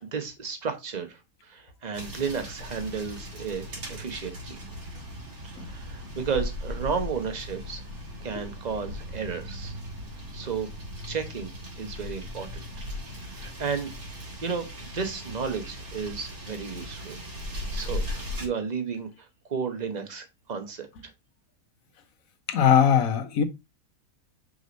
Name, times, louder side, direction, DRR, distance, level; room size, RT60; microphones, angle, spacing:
voice 1, 0.0-4.6 5.5-7.8 8.2-9.7 10.3-10.7 11.1-11.5 11.8-12.6 13.2-17.2 17.7-21.1, right 6 dB, 30° right, 1.0 m, -33 dB
sound 1, 1.9-18.5, left 1 dB, 75° right, 2.8 m, -38 dB
voice 2, 22.5-23.4, left 8 dB, 70° left, 1.3 m, -20 dB
5.2 x 4.9 x 3.9 m
omnidirectional pair, 1.5 m